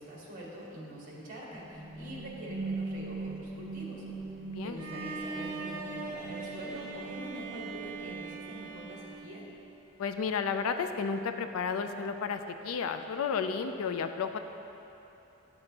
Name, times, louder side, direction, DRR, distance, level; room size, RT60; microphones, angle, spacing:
voice 1, 0.0-4.0 4.6-9.4, right 1 dB, 40° right, -5 dB, 1.7 m, -44 dB
sound 1, 1.5-9.3, right 3 dB, 10° right, 1.1 m, -41 dB
voice 2, 4.4-4.8 10.0-14.4, left 6 dB, 80° left, 8 dB, 0.4 m, -32 dB
Bowed string instrument, 4.8-9.8, right 4 dB, 85° right, 0.7 m, -41 dB
11.5 x 6.9 x 2.8 m, 3.0 s
head